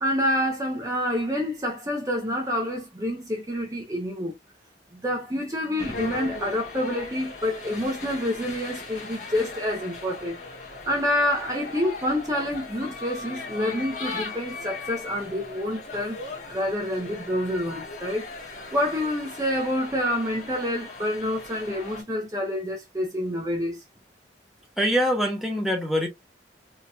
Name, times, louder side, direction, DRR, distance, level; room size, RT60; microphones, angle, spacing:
voice 1, 0.0-4.3 4.9-10.4 10.9-16.2 16.5-23.8, left 1 dB, 20° right, 0.9 m, -28 dB
sound 1, 5.8-22.0, left 3 dB, 40° left, 1.8 m, -38 dB
voice 2, 24.8-26.1, equal, ahead, 1.1 m, -24 dB
4.3 x 3.0 x 2.4 m
head